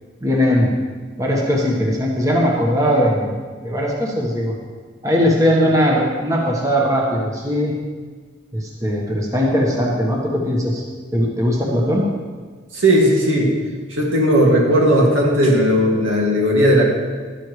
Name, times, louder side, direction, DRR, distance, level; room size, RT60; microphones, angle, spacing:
voice 1, 0.2-0.7 1.2-4.5 5.0-7.7 8.5-10.8 11.1-12.0, equal, 15° right, -2 dB, 1.3 m, -19 dB
voice 2, 12.7-13.5 13.9-16.8, equal, 75° right, -2 dB, 2.2 m, -16 dB
12.5 x 12.0 x 3.2 m, 1.5 s
head